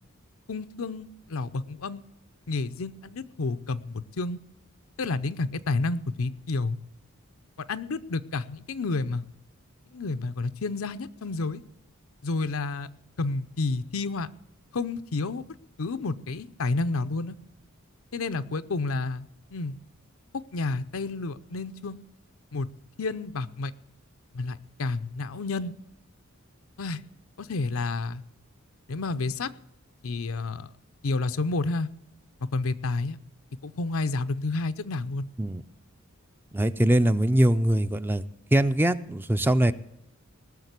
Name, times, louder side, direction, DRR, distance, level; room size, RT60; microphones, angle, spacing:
voice 1, 0.5-2.1 2.5-4.4 5.0-6.8 7.7-9.3 9.9-11.6 12.2-12.9 13.2-14.3 14.7-15.4 15.8-17.4 18.1-19.8 20.3-22.0 22.5-22.7 23.0-23.7 24.3-25.7 26.8-27.0 27.4-28.2 28.9-29.5 30.0-30.7 31.0-31.9 32.5-33.2 33.6-35.3, left 3 dB, 80° left, 11 dB, 0.7 m, -30 dB
voice 2, 36.5-38.2 38.5-39.7, right 1 dB, 10° right, 12 dB, 0.4 m, -22 dB
18.5 x 6.6 x 8.1 m, 0.82 s
head